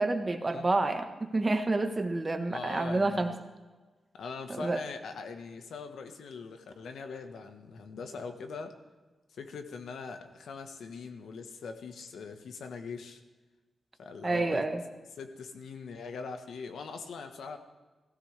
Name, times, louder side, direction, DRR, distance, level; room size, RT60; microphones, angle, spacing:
voice 1, 0.0-3.3 4.5-4.8 14.2-14.8, right 2 dB, 25° right, 6 dB, 1.2 m, -29 dB
voice 2, 2.5-3.4 4.1-8.7 9.3-13.2 14.0-14.7 15.2-17.6, left 4 dB, 85° left, 7 dB, 1.3 m, -41 dB
17.0 x 16.0 x 3.4 m, 1.3 s
wide cardioid pair, 130°, 0 cm